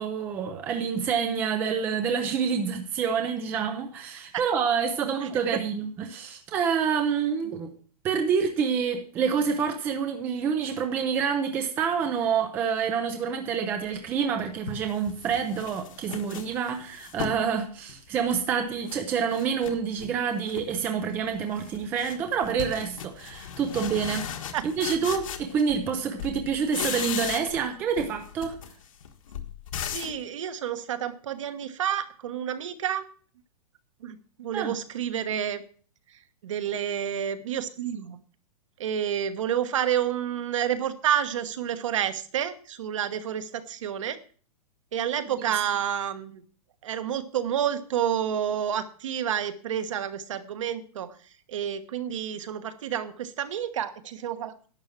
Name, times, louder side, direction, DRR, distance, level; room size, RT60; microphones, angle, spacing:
voice 1, 0.0-7.7 8.0-24.3 24.6-28.6 34.5-34.7 45.4-45.5, right 6 dB, 10° right, 6 dB, 0.5 m, -27 dB
sound 1, 14.0-14.1 14.7-17.5 17.9-19.0 19.3-20.1 20.5-20.9 21.2-25.9 26.2-27.7 28.0-30.2, left 8 dB, 55° left, 1.6 m, -37 dB
voice 2, 29.9-33.1 34.0-35.6 36.4-38.2 38.8-44.2 44.9-46.4 46.8-51.1 51.5-54.7, right 9 dB, 50° right, 10 dB, 1.3 m, -29 dB
11.5 x 7.2 x 7.4 m, 0.43 s
hypercardioid pair, 175°, 20 cm